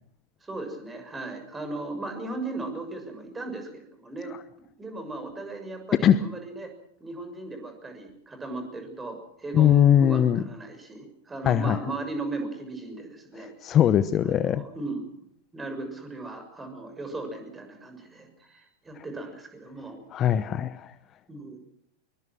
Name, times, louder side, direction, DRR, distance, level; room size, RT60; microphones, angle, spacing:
voice 1, 0.4-4.3 4.8-6.7 7.0-13.8 14.2-15.0 15.5-20.0 21.3-21.6, right 2 dB, 15° right, 6 dB, 6.5 m, -37 dB
voice 2, 9.5-10.4 11.4-11.8 13.4-14.6 18.9-19.0 20.1-20.9, left 10 dB, 30° left, 15 dB, 0.9 m, -21 dB
24.5 x 23.0 x 6.1 m, 0.65 s
figure-of-eight pair, 90°, 0 cm